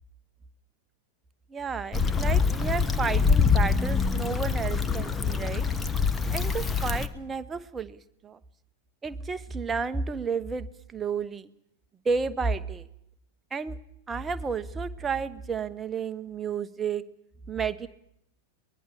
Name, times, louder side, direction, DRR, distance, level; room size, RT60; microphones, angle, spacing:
voice 1, 1.5-5.6 6.3-8.4 9.0-11.5 12.0-12.9 13.5-13.8 14.1-17.0 17.5-17.9, right 5 dB, 15° right, 10 dB, 1.1 m, -31 dB
Stream / Traffic noise roadway noise / Trickle dribble, 1.9-7.1, left 5 dB, 15° left, 1.3 m, -25 dB
24.0 x 20.5 x 7.4 m, 0.77 s
figure-of-eight pair, 90°, 0 cm